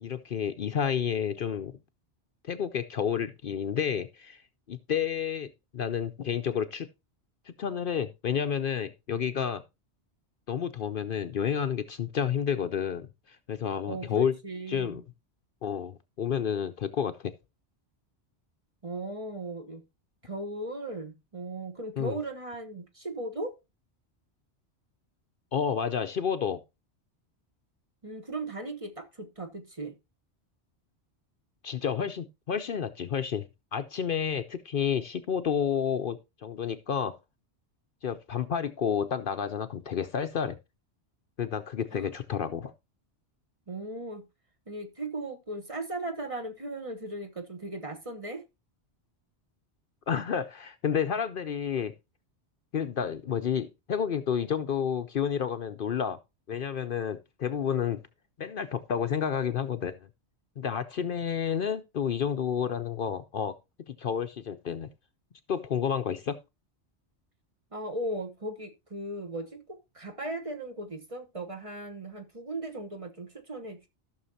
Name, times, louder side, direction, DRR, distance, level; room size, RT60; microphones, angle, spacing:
voice 1, 0.0-1.8 2.4-4.4 4.7-6.9 7.5-9.6 10.5-14.3 14.7-15.0 15.6-17.3 22.0-22.2 25.5-26.6 31.6-33.5 33.7-37.2 38.0-40.6 41.4-42.7 50.1-51.9 52.7-56.2 56.5-58.0 58.4-60.0 60.6-63.5 63.9-64.9 65.5-66.4, left 7 dB, 55° left, 0.8 m, -30 dB
voice 2, 13.9-15.0 18.8-19.8 20.2-23.5 28.0-29.9 41.9-42.1 43.7-44.2 44.7-48.4 67.7-73.9, right 1 dB, 30° right, 1.2 m, -37 dB
14.5 x 6.4 x 2.7 m
omnidirectional pair, 1.2 m